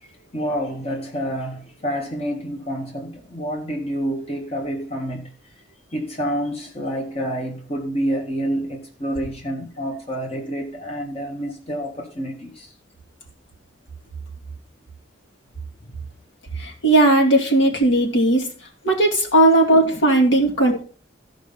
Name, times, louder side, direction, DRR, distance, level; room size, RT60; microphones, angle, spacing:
voice 1, 0.0-5.3 5.9-12.7 15.8-15.9, equal, 30° left, 1.8 m, -28 dB
voice 2, 16.5-18.5 18.8-20.8, right 1 dB, 80° left, 2.6 m, -17 dB
14.0 x 5.3 x 5.7 m
head